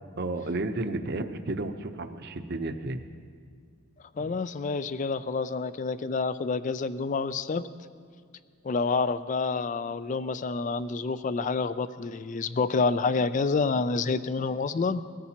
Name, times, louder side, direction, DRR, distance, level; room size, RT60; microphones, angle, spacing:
voice 1, 0.2-3.0 4.2-4.3, right 2 dB, 50° right, 8 dB, 0.7 m, -32 dB
voice 2, 4.2-7.7 8.6-15.0, left 4 dB, 35° left, 14 dB, 0.3 m, -28 dB
21.5 x 14.0 x 2.9 m, 2.1 s
head